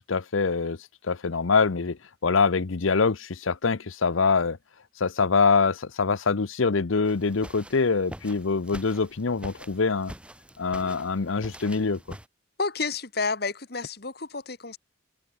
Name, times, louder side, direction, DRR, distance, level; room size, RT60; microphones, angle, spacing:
voice 1, 0.1-0.8 1.0-4.6 5.0-10.1 10.6-12.2, left 4 dB, 80° left, 0.8 m, -24 dB
sound 1, 7.0-12.3, equal, 5° right, 4.0 m, -45 dB
voice 2, 12.6-14.8, left 4 dB, 50° left, 1.9 m, -30 dB
open air
head